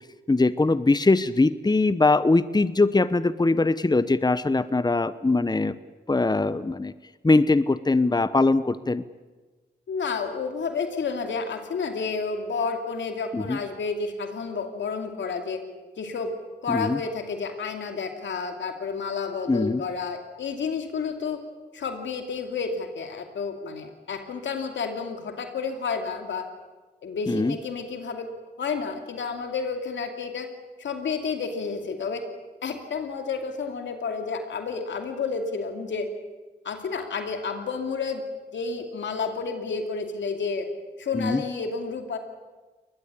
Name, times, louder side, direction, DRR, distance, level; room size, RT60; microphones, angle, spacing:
voice 1, 0.3-5.8 6.1-6.9 7.2-9.0 13.3-13.6 16.7-17.0 19.5-19.8 27.3-27.5 41.1-41.4, left 3 dB, 20° left, 15 dB, 1.0 m, -21 dB
voice 2, 9.9-15.6 16.0-16.3 16.6-21.4 21.7-26.5 27.0-28.3 28.6-30.5 30.8-32.3 32.6-36.1 36.6-38.2 38.5-40.7 41.0-42.2, left 5 dB, 85° left, 5 dB, 2.6 m, -30 dB
23.0 x 20.0 x 8.4 m, 1.3 s
cardioid pair, 45°, 19 cm